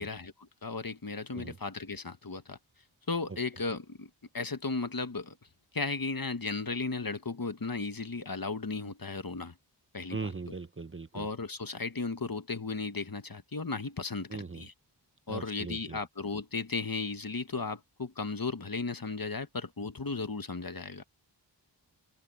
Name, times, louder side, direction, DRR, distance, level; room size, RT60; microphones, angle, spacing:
voice 1, 0.0-2.6 3.1-5.3 5.7-9.5 9.9-10.3 11.1-14.7 15.3-21.0, left 4 dB, 50° left, 1.4 m, -35 dB
voice 2, 10.1-11.3 14.3-14.6 15.3-16.0, right 4 dB, 30° right, 0.7 m, -39 dB
open air
wide cardioid pair, 60°, 44 cm